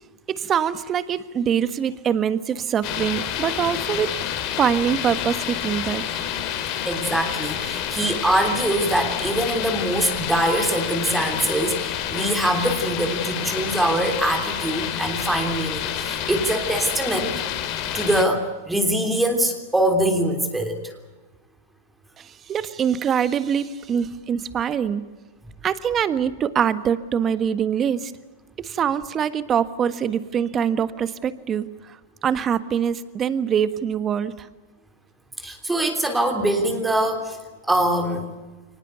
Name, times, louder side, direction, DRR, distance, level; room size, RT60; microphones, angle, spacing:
voice 1, 0.3-4.1 4.6-6.0 22.2-25.0 25.6-28.1 28.6-32.0 32.2-34.5, right 8 dB, 25° right, 13 dB, 1.5 m, -24 dB
sound 1, 2.8-18.2, left 10 dB, 45° left, 3.6 m, -29 dB
voice 2, 6.8-17.4 17.9-20.9 35.4-37.4 37.7-38.3, right 1 dB, 5° right, 4 dB, 3.3 m, -23 dB
23.5 x 19.5 x 8.2 m, 1.2 s
hypercardioid pair, 125°, 0 cm